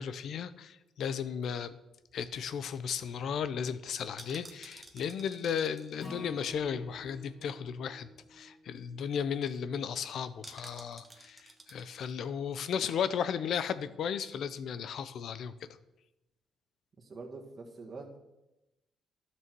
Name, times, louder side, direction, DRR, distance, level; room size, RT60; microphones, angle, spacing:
voice 1, 0.0-1.7 2.1-11.4 11.7-15.5, left 7 dB, 70° left, 14 dB, 0.6 m, -35 dB
sound 1, 2.1-7.3 7.6-7.7 8.0-8.3 8.6-8.7 9.0-9.4 10.4-12.1 12.5-12.6, right 2 dB, 15° right, 1.5 m, -54 dB
Acoustic guitar / Strum, 6.0-10.3, left 1 dB, 45° left, 2.4 m, -50 dB
voice 2, 17.0-18.2, right 3 dB, 35° right, -1 dB, 2.0 m, -45 dB
12.5 x 6.2 x 4.6 m, 0.95 s
cardioid pair, 90°, 0 cm